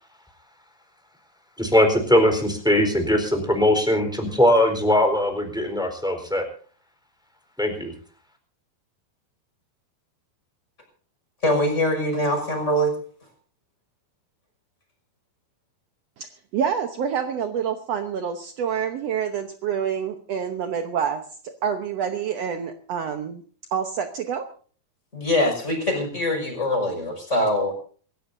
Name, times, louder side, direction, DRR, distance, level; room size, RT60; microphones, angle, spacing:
voice 1, 1.6-6.5 7.6-7.9, left 1 dB, ahead, 4 dB, 3.7 m, -20 dB
voice 2, 11.4-12.9 25.1-27.7, equal, 15° left, 2 dB, 6.1 m, -23 dB
voice 3, 16.2-23.4 23.7-24.5, right 7 dB, 80° right, 6 dB, 1.4 m, -27 dB
27.5 x 14.5 x 2.7 m, 0.42 s
omnidirectional pair, 4.5 m